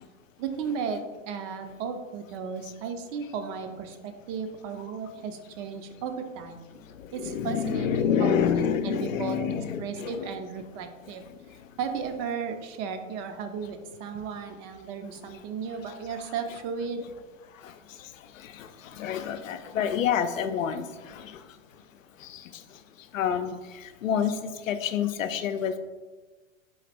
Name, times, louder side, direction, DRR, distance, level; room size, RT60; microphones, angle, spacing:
voice 1, 0.4-6.7 7.1-9.4 9.8-11.2 11.8-17.0, right 6 dB, 40° right, 7 dB, 0.6 m, -35 dB
voice 2, 6.8-10.4 11.4-11.7 17.5-21.8 22.2-25.8, left 8 dB, 80° left, 9 dB, 0.5 m, -29 dB
4.0 x 3.9 x 3.3 m, 1.3 s
hypercardioid pair, 95°, 39 cm